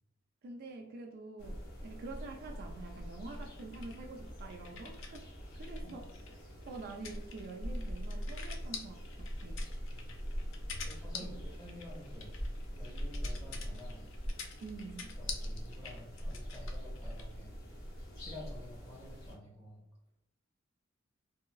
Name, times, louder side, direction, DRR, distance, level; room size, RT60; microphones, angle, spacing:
voice 1, 0.4-5.3 5.6-6.0 6.7-9.6 11.2-11.4 14.6-15.2, right 3 dB, 50° right, 2 dB, 0.3 m, -47 dB
sound 1, 1.4-19.3, equal, 50° left, 0.9 m, -42 dB
sound 2, 3.3-5.2 5.5-17.3, left 6 dB, 65° left, 0.4 m, -47 dB
voice 2, 9.9-10.3 10.9-12.4 12.7-14.0 15.2-17.6 18.2-19.8, left 1 dB, 15° left, -4 dB, 1.1 m, -51 dB
3.5 x 2.0 x 2.2 m, 0.79 s
head